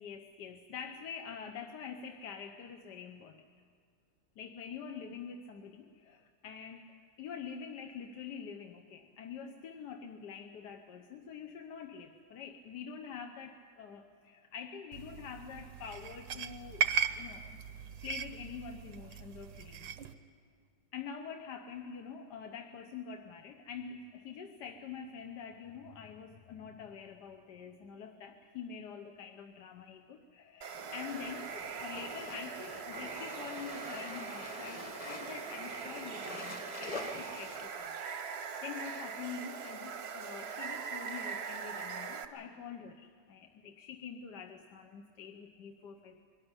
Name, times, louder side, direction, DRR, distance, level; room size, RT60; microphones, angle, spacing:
voice 1, 0.0-3.5 4.4-17.6 18.0-19.9 20.9-38.0 38.6-46.2, left 6 dB, 70° left, 5 dB, 1.4 m, -46 dB
sound 1, 14.9-20.1, right 7 dB, 85° right, 1.5 m, -37 dB
Water, 30.6-42.3, right 6 dB, 45° right, 0.9 m, -42 dB
sound 2, 30.7-37.7, left 2 dB, 20° left, 1.3 m, -46 dB
22.5 x 13.5 x 9.7 m, 2.2 s
omnidirectional pair, 1.9 m